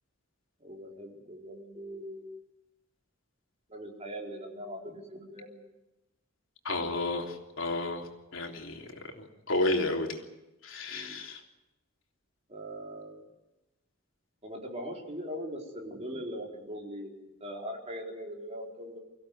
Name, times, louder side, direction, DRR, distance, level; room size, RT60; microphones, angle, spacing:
voice 1, 0.6-2.3 3.7-5.6 10.9-11.2 12.5-13.2 14.4-19.0, equal, 30° right, -1 dB, 4.5 m, -41 dB
voice 2, 6.6-10.2 10.6-11.4, left 2 dB, 70° left, 1 dB, 3.4 m, -32 dB
24.5 x 16.0 x 9.4 m, 0.98 s
head